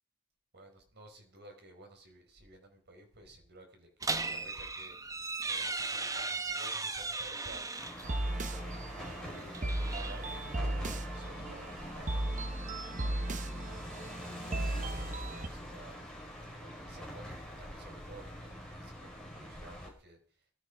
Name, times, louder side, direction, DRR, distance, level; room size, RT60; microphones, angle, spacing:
voice 1, 0.5-4.9 5.4-7.7 8.5-13.8 14.2-16.0 16.6-20.2, right 1 dB, 55° right, 4 dB, 5.0 m, -53 dB
sound 1, 4.0-8.1 9.4-10.6, right 3 dB, 15° right, 1.0 m, -37 dB
sound 2, 7.8-19.9, equal, 5° left, 5.2 m, -45 dB
sound 3, 8.0-15.5, right 1 dB, 35° right, 1.1 m, -36 dB
17.5 x 12.5 x 5.0 m, 0.43 s
head